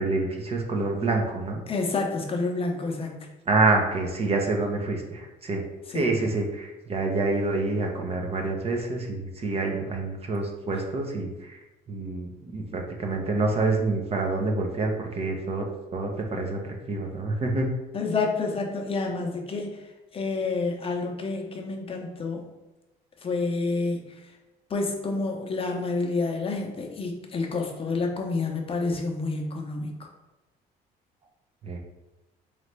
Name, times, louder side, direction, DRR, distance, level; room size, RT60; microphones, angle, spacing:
voice 1, 0.0-1.6 3.5-5.6 5.9-11.6 11.9-15.7 15.9-17.7 31.6-31.8, right 3 dB, 35° right, 2 dB, 0.7 m, -27 dB
voice 2, 1.7-3.3 5.9-6.1 17.9-19.9 20.1-22.5 23.2-24.2 24.7-30.1, left 3 dB, 35° left, 1 dB, 0.7 m, -29 dB
3.8 x 3.2 x 3.2 m, 1.0 s
cardioid pair, 110°, 17 cm